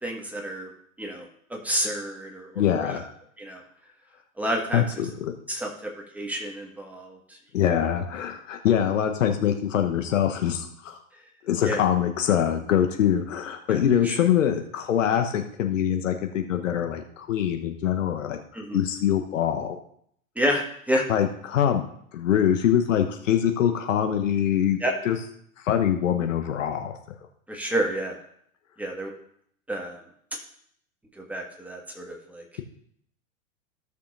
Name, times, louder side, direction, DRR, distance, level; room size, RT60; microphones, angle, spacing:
voice 1, 0.0-0.7 1.0-1.2 1.5-3.0 3.4-3.6 4.4-4.8 5.5-7.4 11.6-11.8 13.7-14.2 18.5-18.8 20.3-21.0 24.8-24.9 27.5-28.1 28.8-29.1 29.7-30.0 31.2-32.4, equal, 5° right, 0 dB, 1.6 m, -29 dB
voice 2, 2.5-3.0 4.7-5.3 7.5-11.0 11.4-18.4 18.7-19.8 21.1-21.8 22.1-24.8 25.0-25.2 25.6-26.9, left 9 dB, 65° left, 5 dB, 1.1 m, -24 dB
15.5 x 6.7 x 2.6 m, 0.66 s
figure-of-eight pair, 100°, 41 cm